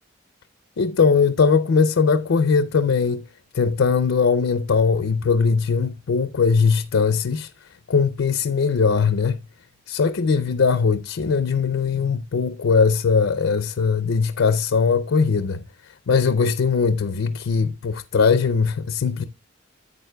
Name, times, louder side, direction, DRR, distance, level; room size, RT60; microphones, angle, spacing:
voice 1, 0.8-3.2 3.5-7.5 7.9-9.4 9.9-15.6 16.1-19.2, left 5 dB, 80° left, 0.5 m, -20 dB
11.0 x 8.4 x 2.2 m
head